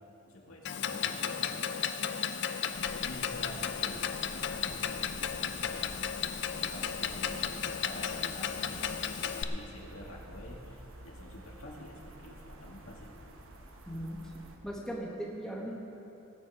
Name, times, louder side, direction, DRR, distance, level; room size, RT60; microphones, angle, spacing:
voice 1, 0.3-1.6 2.7-5.9 6.5-13.1, left 1 dB, 85° left, -2 dB, 2.1 m, -47 dB
Clock, 0.7-9.4, left 8 dB, 55° left, 0.5 m, -34 dB
sound 1, 2.7-14.6, right 1 dB, 70° right, 1.1 m, -50 dB
voice 2, 13.9-14.2 14.6-15.8, right 1 dB, 5° left, -3 dB, 1.4 m, -38 dB
18.0 x 8.4 x 4.8 m, 2.9 s
head